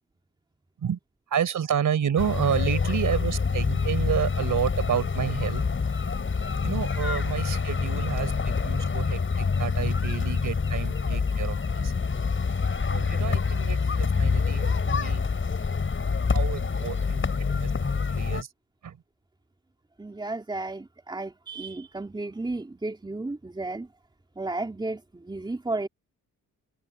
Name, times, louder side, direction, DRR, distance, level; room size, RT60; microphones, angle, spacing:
voice 1, 1.3-5.6 6.6-11.9 12.9-15.3 16.3-18.5 18.8-19.0, right 8 dB, 60° right, 4.6 m, -30 dB
sound 1, 2.2-18.4, left 5 dB, 35° left, 7.6 m, -26 dB
voice 2, 20.0-23.9 24.4-25.9, right 2 dB, 15° right, 2.9 m, -33 dB
cardioid pair, 115°, 34 cm